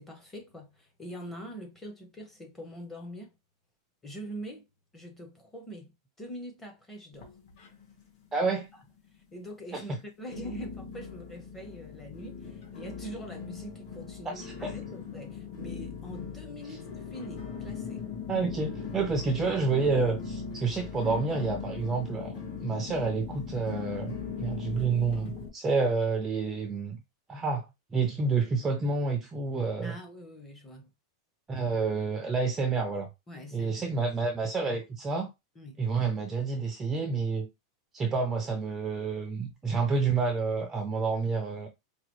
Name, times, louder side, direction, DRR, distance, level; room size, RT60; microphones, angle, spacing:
voice 1, 0.0-3.3 4.0-4.7 4.9-5.9 6.2-7.3 8.4-8.6 9.3-18.1 29.8-30.9 33.3-34.1 35.6-35.8, equal, 10° left, 0.8 m, -44 dB
sound 1, 7.1-8.1 8.3-9.0 9.5-9.6 10.3-25.5, left 6 dB, 50° left, 1.4 m, -39 dB
voice 2, 8.3-8.7 9.7-10.0 14.3-14.7 18.3-27.0 27.3-30.0 31.5-33.1 33.5-35.3 35.8-37.5 37.9-41.7, right 4 dB, 10° right, 0.5 m, -29 dB
4.7 x 2.3 x 3.0 m
supercardioid pair, 170°, 2 cm